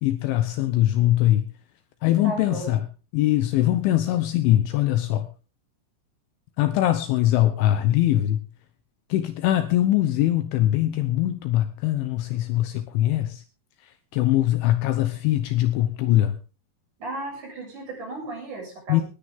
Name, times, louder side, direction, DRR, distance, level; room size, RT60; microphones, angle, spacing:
voice 1, 0.0-1.5 2.0-2.8 3.1-5.3 6.6-8.4 9.1-13.4 14.1-16.3 18.9-19.0, left 14 dB, 75° left, 3.1 m, -22 dB
voice 2, 2.2-2.8 17.0-19.0, right 2 dB, 35° right, 8.4 m, -35 dB
19.0 x 13.0 x 3.7 m
omnidirectional pair, 6.0 m